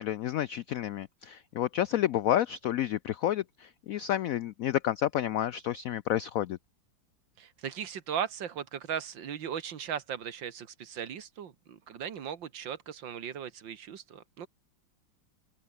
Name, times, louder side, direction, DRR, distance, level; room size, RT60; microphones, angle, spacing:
voice 1, 0.0-6.6, left 12 dB, 85° left, 0.7 m, -30 dB
voice 2, 7.4-14.5, right 8 dB, 75° right, 2.2 m, -37 dB
open air
omnidirectional pair, 2.1 m